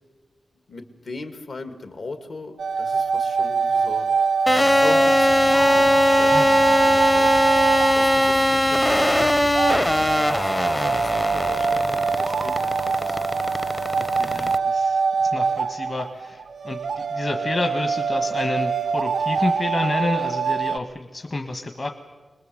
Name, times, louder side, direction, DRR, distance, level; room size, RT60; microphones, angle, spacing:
voice 1, 0.7-4.3 4.5-7.5 8.0-9.5 10.0-13.3, left 3 dB, 65° left, 7 dB, 2.2 m, -38 dB
sound 1, 2.6-20.8, right 5 dB, 90° right, 0.8 m, -24 dB
sound 2, 4.5-14.6, left 1 dB, 10° left, 0.7 m, -20 dB
sound 3, 5.2-11.0, left 3 dB, 80° left, 2.2 m, -41 dB
voice 2, 14.0-21.9, left 2 dB, 35° left, 5 dB, 1.4 m, -29 dB
26.0 x 20.5 x 7.8 m, 1.3 s
wide cardioid pair, 155°, 0 cm